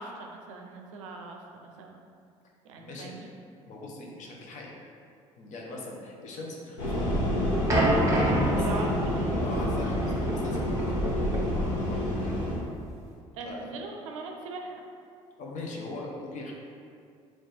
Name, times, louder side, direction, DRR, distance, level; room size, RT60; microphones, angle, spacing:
voice 1, 0.0-2.0 2.6-3.3 8.6-9.3 13.3-14.8, right 3 dB, 75° right, 2 dB, 0.5 m, -40 dB
voice 2, 2.8-3.1 3.7-4.7 5.4-7.2 8.1-8.9 9.3-12.4 13.4-13.7 15.4-16.5, left 2 dB, 50° left, -2 dB, 0.8 m, -40 dB
sound 1, 6.8-12.6, left 1 dB, 80° left, 1.0 m, -28 dB
sound 2, 7.7-13.1, right 1 dB, 20° right, 1.1 m, -29 dB
3.1 x 3.1 x 4.1 m, 2.3 s
figure-of-eight pair, 55°, 17 cm